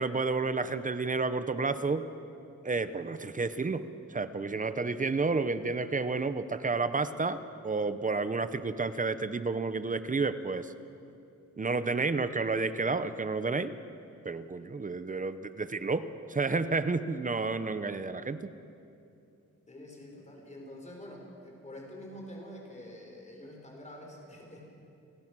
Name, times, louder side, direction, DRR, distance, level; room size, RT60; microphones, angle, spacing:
voice 1, 0.0-2.0 2.6-3.8 4.1-10.7 11.6-13.7 14.2-18.5, right 3 dB, 25° right, 12 dB, 0.7 m, -31 dB
voice 2, 19.7-24.6, left 1 dB, 25° left, 0 dB, 4.8 m, -46 dB
29.5 x 18.0 x 6.1 m, 2.7 s
wide cardioid pair, 160°, 30 cm